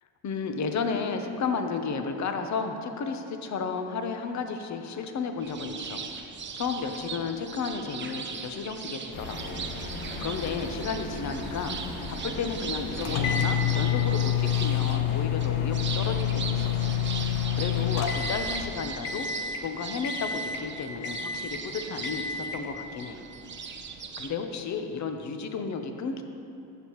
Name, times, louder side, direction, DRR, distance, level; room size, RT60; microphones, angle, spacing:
voice 1, 0.2-6.1 6.5-9.7 10.0-11.8 12.1-17.0 17.5-19.3 19.6-23.3 24.2-26.2, left 5 dB, 40° left, 6 dB, 0.9 m, -33 dB
sound 1, 5.4-24.3, right 6 dB, 25° right, 0.7 m, -39 dB
sound 2, 9.1-18.7, left 2 dB, 70° left, 1.4 m, -38 dB
sound 3, 13.0-18.7 19.0-19.6 20.0-20.7 21.0-21.6 22.0-22.7, left 9 dB, 85° left, 0.9 m, -28 dB
13.5 x 7.4 x 3.1 m, 2.7 s
supercardioid pair, 105°, 44 cm